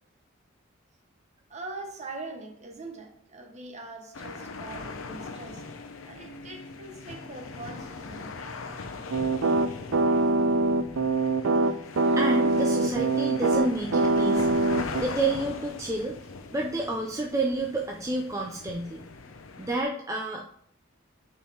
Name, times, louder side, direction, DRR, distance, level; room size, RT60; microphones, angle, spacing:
voice 1, 1.5-5.6 6.0-8.3 12.0-12.2, right 2 dB, 35° right, 1.2 m, -42 dB
sound 1, 4.1-19.8, left 4 dB, 90° left, 0.7 m, -41 dB
sound 2, 9.1-15.0, right 2 dB, 90° right, 0.5 m, -23 dB
voice 2, 12.2-14.6 15.0-16.2 16.5-19.0 19.6-20.6, right 2 dB, 15° right, 0.6 m, -29 dB
5.2 x 4.4 x 5.7 m
head